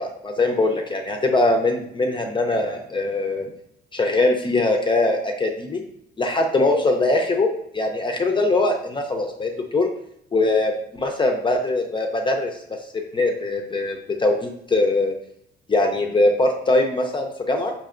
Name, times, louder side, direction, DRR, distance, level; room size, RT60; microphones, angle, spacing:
voice 1, 0.0-3.5 3.9-5.8 6.2-7.5 7.7-9.9 10.3-12.5 12.9-15.1 15.7-17.7, left 2 dB, 25° left, 2 dB, 0.5 m, -22 dB
4.2 x 2.8 x 2.4 m, 0.74 s
cardioid pair, 90°, 20 cm